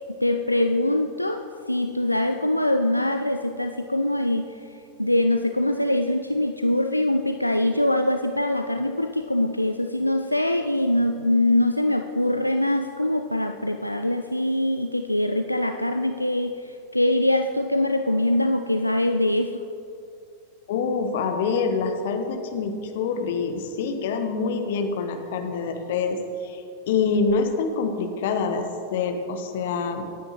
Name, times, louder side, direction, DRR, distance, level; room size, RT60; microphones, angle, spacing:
voice 1, 0.2-4.6 5.0-19.6, left 1 dB, 85° left, 6 dB, 0.3 m, -23 dB
voice 2, 20.7-26.2 26.4-26.6 26.9-28.6 28.9-30.1, left 5 dB, 55° left, 6 dB, 1.1 m, -26 dB
17.0 x 9.3 x 3.0 m, 2.7 s
figure-of-eight pair, 90°, 0 cm